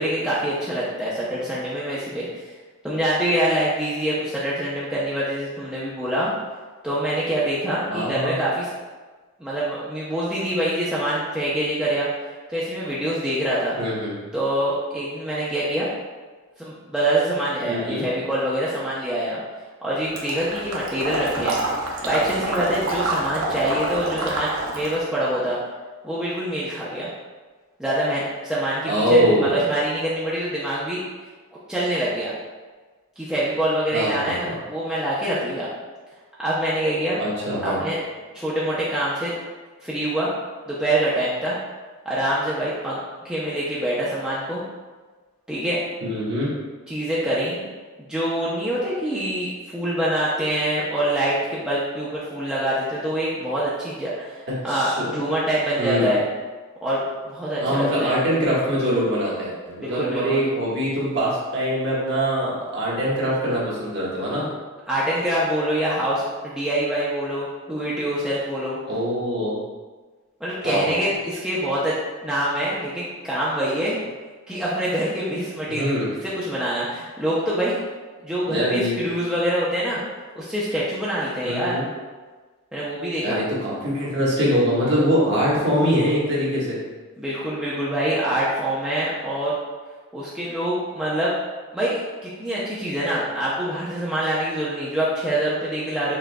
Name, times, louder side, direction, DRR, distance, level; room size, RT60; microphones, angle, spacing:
voice 1, 0.0-2.3 2.8-6.3 6.8-8.7 9.4-12.1 12.5-13.8 14.3-15.9 16.6-19.4 19.8-21.6 22.0-25.6 26.0-27.1 27.8-31.0 31.7-32.3 33.2-34.4 34.7-35.7 36.4-37.2 37.6-38.0 38.3-39.4 39.8-40.3 40.7-41.6 42.1-43.0 43.2-44.6 45.5-45.8 46.9-47.7 48.1-56.2 56.8-58.1 59.8-60.4 64.9-68.8 70.4-71.9 72.2-74.0 74.5-75.9 76.2-77.8 78.2-80.0 80.3-81.8 82.7-83.4 87.2-89.5 90.1-91.3 91.7-96.1, right 1 dB, 5° right, -9 dB, 0.6 m, -25 dB
voice 2, 7.9-8.3 13.8-14.1 17.6-18.0 28.9-29.5 33.9-34.5 37.2-37.8 46.0-46.5 54.7-55.2 55.8-56.1 57.6-64.5 68.8-69.6 70.6-70.9 75.7-76.1 78.4-78.9 81.4-81.8 83.2-86.8, equal, 55° right, -6 dB, 1.4 m, -23 dB
Water / Liquid, 20.2-25.0, right 2 dB, 70° right, 0.8 m, -27 dB
6.0 x 3.8 x 2.2 m, 1.3 s
head